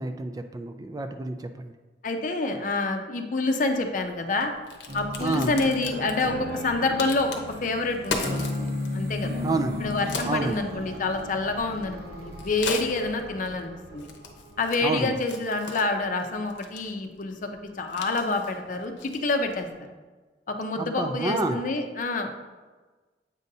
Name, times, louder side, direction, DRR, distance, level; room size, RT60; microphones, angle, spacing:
voice 1, 0.0-1.7 5.2-5.5 9.4-9.8 10.2-10.6 14.8-15.1 20.8-21.6, right 2 dB, 20° right, 7 dB, 0.3 m, -29 dB
voice 2, 2.0-4.5 4.9-7.3 7.6-9.4 9.8-14.1 14.6-17.5 17.8-19.7 20.5-22.3, left 3 dB, 50° left, 5 dB, 0.6 m, -27 dB
Crack, 3.7-19.7, left 4 dB, 85° left, 0.9 m, -40 dB
sound 1, 4.9-15.1, left 1 dB, 60° right, 1.0 m, -35 dB
8.2 x 5.3 x 2.7 m, 1.3 s
head